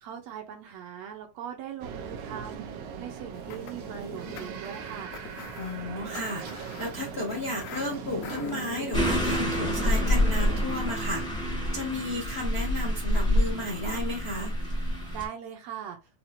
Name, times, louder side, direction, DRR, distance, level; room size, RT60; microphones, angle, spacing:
voice 1, 0.0-2.6 3.0-5.1 15.1-16.0, right 9 dB, 75° right, 4 dB, 1.7 m, -40 dB
sound 1, 1.8-10.7, right 7 dB, 90° right, 2.2 m, -40 dB
sound 2, 3.3-8.9, left 10 dB, 90° left, 2.0 m, -44 dB
voice 2, 5.6-6.4 6.8-11.2 11.7-14.5, left 1 dB, 60° left, -3 dB, 0.6 m, -33 dB
sound 3, 8.9-15.3, left 1 dB, 5° left, 0.3 m, -27 dB
5.7 x 2.4 x 2.6 m, 0.25 s
omnidirectional pair, 3.4 m